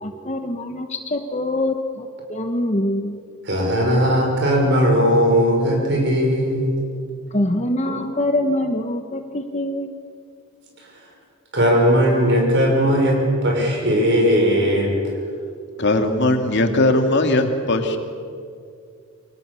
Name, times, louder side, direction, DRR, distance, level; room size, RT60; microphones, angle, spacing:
voice 1, 0.0-3.2 7.3-9.9, left 1 dB, 30° left, 5 dB, 1.2 m, -24 dB
voice 2, 3.5-6.9 7.8-8.0 11.5-14.9, equal, 50° right, 0 dB, 6.1 m, -18 dB
voice 3, 15.8-18.0, left 2 dB, 50° left, 5 dB, 2.6 m, -19 dB
28.5 x 24.5 x 7.1 m, 2.3 s
head